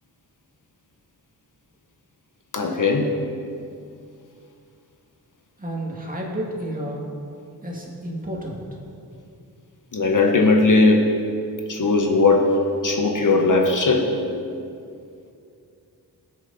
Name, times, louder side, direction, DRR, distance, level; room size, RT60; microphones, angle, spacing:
voice 1, 2.5-3.1 9.9-11.1 11.7-12.5 12.8-14.2, left 3 dB, 55° left, 2 dB, 1.2 m, -18 dB
voice 2, 5.6-7.1 7.6-8.6, right 1 dB, 20° right, -3 dB, 2.2 m, -31 dB
19.0 x 6.6 x 4.2 m, 2.5 s
wide cardioid pair, 90°, 38 cm